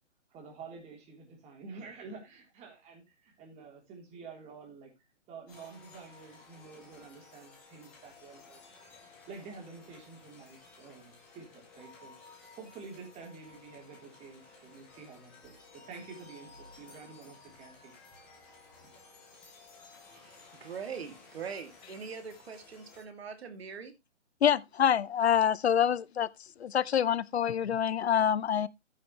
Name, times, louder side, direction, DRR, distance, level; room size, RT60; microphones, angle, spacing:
voice 1, 0.3-4.9 5.3-8.6 8.9-18.0 18.4-19.0, right 4 dB, 20° right, 3.4 m, -49 dB
sound 1, 5.5-23.0, left 3 dB, 5° left, 0.4 m, -55 dB
voice 2, 20.2-23.9, right 6 dB, 55° right, 2.7 m, -42 dB
voice 3, 24.4-26.3 26.6-28.7, left 9 dB, 60° left, 0.7 m, -26 dB
14.0 x 6.4 x 3.1 m
hypercardioid pair, 140°, 36 cm